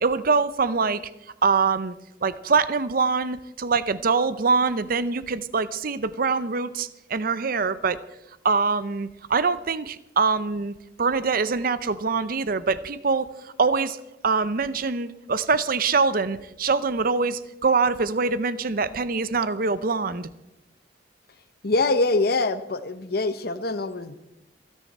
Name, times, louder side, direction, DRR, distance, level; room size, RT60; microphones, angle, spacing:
voice 1, 0.0-1.0 1.4-1.9 2.2-8.0 8.4-14.0 14.2-20.3, right 4 dB, 50° right, 14 dB, 0.7 m, -24 dB
voice 2, 21.6-24.1, left 3 dB, 60° left, 11 dB, 0.9 m, -24 dB
27.5 x 10.0 x 4.3 m, 0.92 s
head